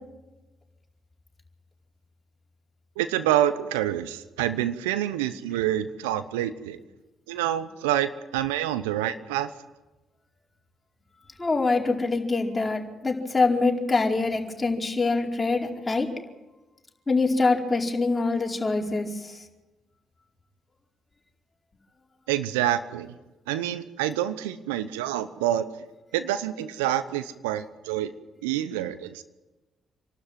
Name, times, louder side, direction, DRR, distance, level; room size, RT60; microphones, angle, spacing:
voice 1, 3.0-6.8 7.3-9.5 22.3-23.1 23.5-25.7 26.1-28.1 28.4-29.2, right 12 dB, 85° right, 13 dB, 0.8 m, -27 dB
voice 2, 11.4-16.1 17.1-19.1, left 3 dB, 25° left, 0 dB, 4.7 m, -24 dB
27.5 x 12.5 x 9.2 m, 1.1 s
hypercardioid pair, 45°, 0 cm